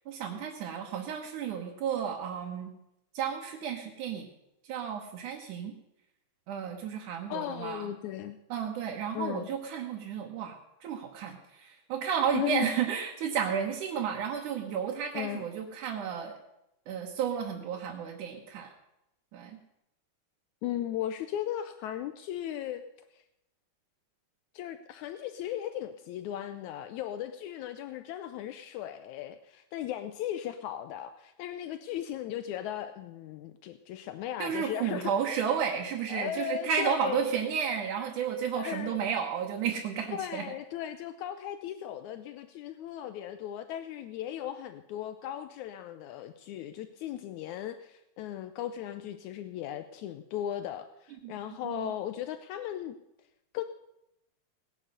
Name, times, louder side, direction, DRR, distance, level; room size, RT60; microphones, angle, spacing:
voice 1, 0.1-2.7 3.1-4.3 4.7-5.7 6.5-7.9 8.5-16.4 16.9-18.7 19.3-19.6 34.4-40.4 51.2-51.3 51.6-51.9, right 7 dB, 90° right, 0 dB, 2.8 m, -32 dB
voice 2, 7.3-8.4 9.1-9.5 12.3-12.7 15.1-15.4 20.6-22.8 23.1-23.2 24.5-35.1 36.1-37.3 38.5-39.0 40.1-53.0 53.5-53.6, left 11 dB, 80° left, 10 dB, 2.0 m, -37 dB
18.5 x 10.0 x 6.6 m, 0.88 s
omnidirectional pair, 3.4 m